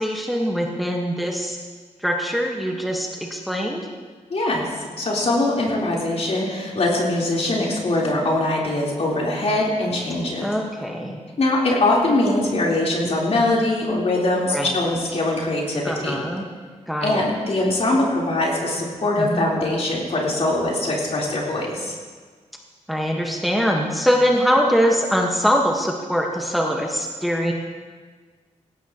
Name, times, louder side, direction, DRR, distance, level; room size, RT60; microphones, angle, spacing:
voice 1, 0.0-1.6 2.0-3.8 10.4-11.2 14.5-14.7 15.8-16.5 16.9-17.3 19.2-19.5 22.9-27.5, equal, ahead, 0 dB, 1.4 m, -22 dB
voice 2, 4.3-10.5 11.4-16.2 17.0-21.9, left 2 dB, 60° left, -4 dB, 3.9 m, -22 dB
18.5 x 16.5 x 3.0 m, 1.5 s
wide cardioid pair, 95°, 13 cm